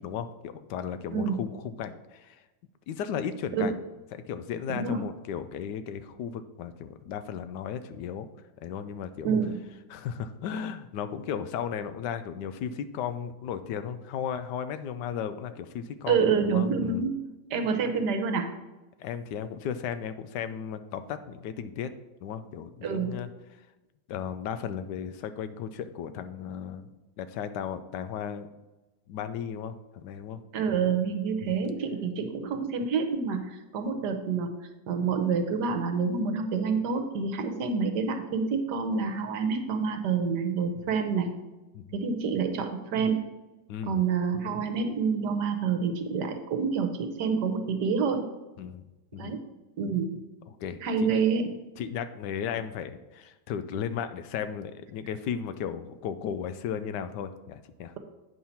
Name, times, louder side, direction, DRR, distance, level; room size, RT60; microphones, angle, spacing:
voice 1, 0.0-2.4 2.9-3.8 4.1-8.3 8.6-9.3 9.9-17.0 19.0-21.9 22.2-23.3 24.1-26.9 27.2-28.5 29.1-30.4 31.5-31.6 40.8-40.9 41.7-42.0 42.9-43.1 43.7-44.0 48.6-48.8 49.1-49.4 50.5-51.1 51.8-57.9, left 8 dB, 75° left, 11 dB, 1.2 m, -35 dB
voice 2, 1.1-1.4 3.5-3.7 4.7-5.1 9.2-9.6 16.1-17.2 17.5-18.5 22.8-23.2 30.5-34.5 34.9-41.3 41.9-43.2 43.8-48.2 49.2-49.4 49.8-50.2 50.8-51.6, right 5 dB, 70° right, 6 dB, 1.4 m, -27 dB
8.4 x 5.5 x 4.4 m, 1.1 s
omnidirectional pair, 1.9 m